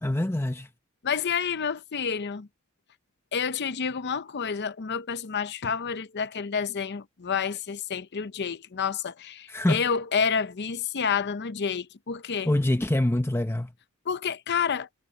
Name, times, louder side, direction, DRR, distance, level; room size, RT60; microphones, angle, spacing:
voice 1, 0.0-0.7 9.5-9.8 12.5-13.7, left 1 dB, 10° left, 0.7 m, -25 dB
voice 2, 1.0-2.5 3.3-12.5 14.1-14.9, left 6 dB, 50° left, 0.6 m, -29 dB
head